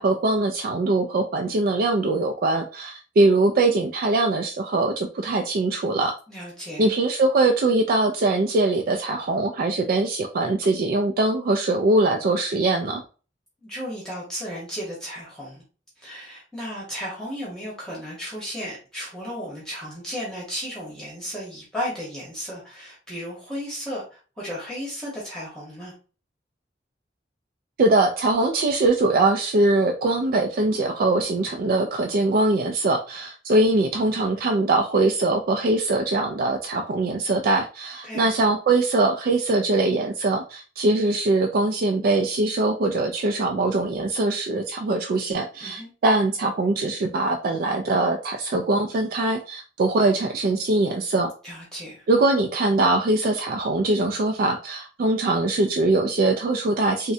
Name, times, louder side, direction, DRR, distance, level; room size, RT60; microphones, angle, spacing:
voice 1, 0.0-6.1 6.8-13.0 27.8-51.3 52.1-57.1, right 2 dB, 55° right, 3 dB, 0.3 m, -22 dB
voice 2, 6.3-6.9 13.6-15.6 16.0-25.9 38.0-38.2 45.6-45.9 51.4-52.0, equal, 5° left, -6 dB, 1.0 m, -34 dB
3.6 x 2.1 x 2.6 m, 0.36 s
head